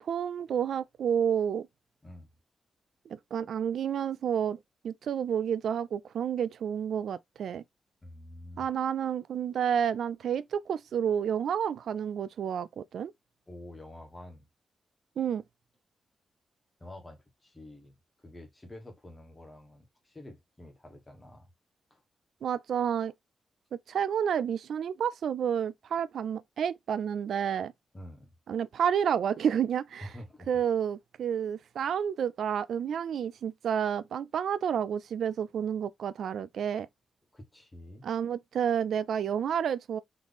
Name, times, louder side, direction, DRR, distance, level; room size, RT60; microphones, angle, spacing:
voice 1, 0.0-1.7 3.1-4.6 4.8-7.6 8.6-13.1 15.2-15.4 22.4-23.1 23.7-27.7 28.5-30.1 30.5-36.9 38.0-40.0, right 8 dB, 80° right, 0.3 m, -30 dB
voice 2, 8.0-8.7 13.5-14.5 16.8-21.5 21.9-22.0 27.9-28.3 30.0-30.5 37.3-38.0, left 1 dB, 15° left, 1.3 m, -48 dB
4.0 x 3.0 x 3.4 m
wide cardioid pair, 155°, 0 cm